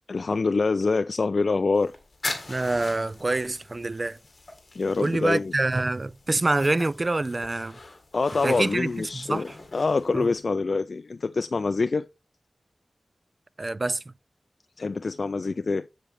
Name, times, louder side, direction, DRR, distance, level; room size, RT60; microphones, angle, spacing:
voice 1, 0.1-1.9 4.8-5.5 8.1-12.0 14.8-15.9, left 4 dB, 65° left, 0.3 m, -25 dB
sound 1, 1.7-10.4, left 2 dB, 50° left, 2.1 m, -41 dB
voice 2, 2.5-4.2 5.0-7.8 8.4-9.6 10.1-10.3 13.6-14.0, right 2 dB, 40° right, 0.3 m, -26 dB
7.5 x 6.9 x 3.4 m
wide cardioid pair, 75°, 0 cm